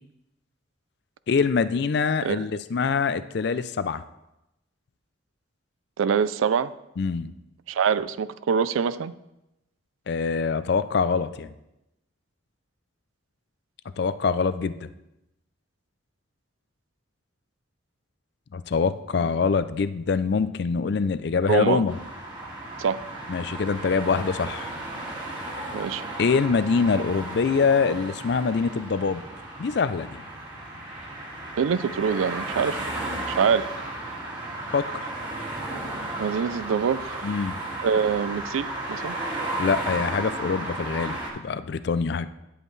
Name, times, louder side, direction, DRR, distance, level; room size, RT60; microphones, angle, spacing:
voice 1, 1.3-4.0 7.0-7.3 10.1-11.5 14.0-14.8 18.5-21.9 23.3-24.7 26.2-29.2 29.6-30.2 34.7-35.1 37.2-37.6 39.6-42.3, left 5 dB, 55° left, 13 dB, 0.4 m, -24 dB
voice 2, 6.0-6.7 7.7-9.1 19.2-19.3 21.5-21.8 22.8-23.0 25.7-26.0 31.6-32.9 33.3-33.7 36.2-37.4 37.8-39.2, right 6 dB, 85° right, 16 dB, 0.4 m, -25 dB
sound 1, 21.9-41.3, right 2 dB, 25° right, 1.8 m, -34 dB
11.0 x 7.8 x 3.2 m, 0.91 s
head